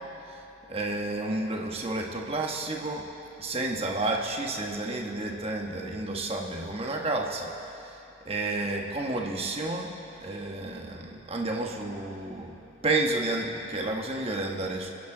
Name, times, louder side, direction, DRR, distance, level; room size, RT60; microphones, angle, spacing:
voice 1, 0.7-3.1 3.4-7.5 7.8-8.0 8.2-9.9 10.2-12.5 12.8-14.9, right 2 dB, 30° right, 1 dB, 1.3 m, -31 dB
29.0 x 10.5 x 3.9 m, 2.9 s
head